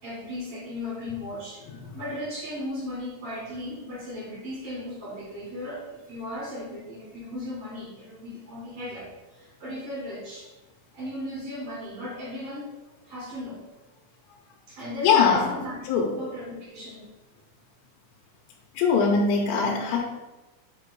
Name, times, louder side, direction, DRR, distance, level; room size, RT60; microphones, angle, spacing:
voice 1, 0.0-1.6 1.9-10.5 10.9-12.8 13.0-13.6 14.7-17.1, left 1 dB, 75° right, -5 dB, 1.5 m, -36 dB
voice 2, 15.0-15.5 15.9-16.1 18.7-20.0, left 5 dB, 80° left, -2 dB, 3.0 m, -21 dB
7.6 x 3.0 x 4.7 m, 1.1 s
omnidirectional pair, 5.5 m